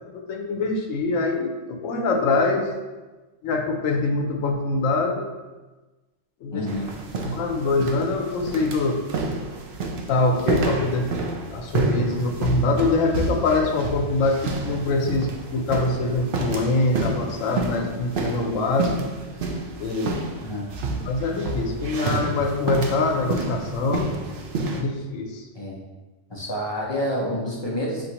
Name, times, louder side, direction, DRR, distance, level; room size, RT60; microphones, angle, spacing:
voice 1, 0.1-2.7 3.4-5.3 6.4-6.6 7.2-9.0 10.1-11.1 11.5-19.1 19.8-20.3 21.1-24.1 24.7-25.4, left 3 dB, 85° left, 3 dB, 1.0 m, -24 dB
voice 2, 6.5-6.9 20.4-20.7 25.5-25.8 26.3-28.0, equal, 45° left, -4 dB, 0.3 m, -28 dB
sound 1, 6.7-24.8, right 3 dB, 60° right, 0.6 m, -29 dB
6.1 x 2.6 x 2.8 m, 1.2 s
omnidirectional pair, 1.3 m